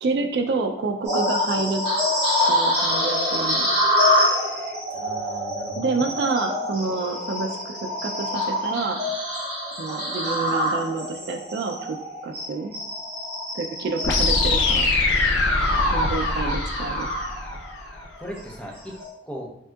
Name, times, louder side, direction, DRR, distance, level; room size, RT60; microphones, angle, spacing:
voice 1, 0.0-1.8 2.5-3.7 5.8-7.8 8.0-9.0 9.7-12.0 12.2-12.7 13.5-14.9 15.9-17.1, right 3 dB, 60° right, 5 dB, 0.3 m, -28 dB
sound 1, 1.0-17.7 18.2-18.4 18.9-19.1, left 1 dB, 35° right, 1.4 m, -26 dB
voice 2, 4.9-6.1 15.7-16.2 18.2-18.9 19.2-19.5, right 1 dB, 5° left, -2 dB, 0.5 m, -38 dB
sound 2, 14.0-18.0, left 3 dB, 75° left, 0.5 m, -22 dB
3.4 x 2.7 x 2.3 m, 0.89 s
head